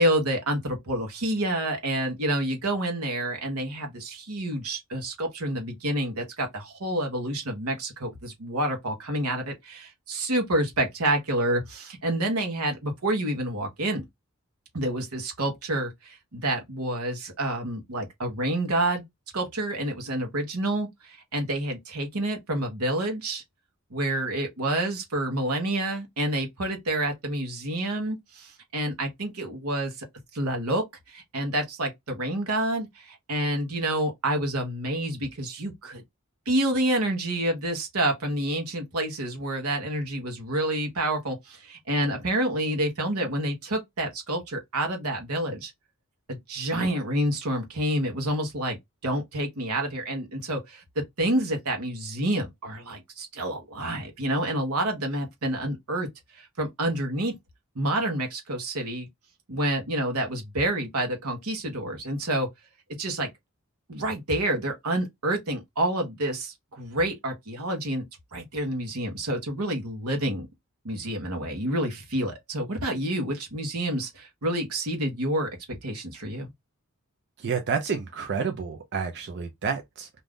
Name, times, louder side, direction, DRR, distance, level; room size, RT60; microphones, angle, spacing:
voice 1, 0.0-14.0 14.7-19.0 19.3-23.4 23.9-29.9 30.3-36.0 36.5-45.7 46.3-48.8 49.0-56.1 56.3-57.3 57.7-59.1 59.5-62.5 63.0-63.3 63.9-68.0 68.3-70.5 70.8-75.5 75.8-76.5, right 1 dB, 85° right, 1.1 m, -28 dB
voice 2, 77.4-80.1, right 5 dB, 50° right, 0.5 m, -29 dB
2.6 x 2.4 x 3.4 m
head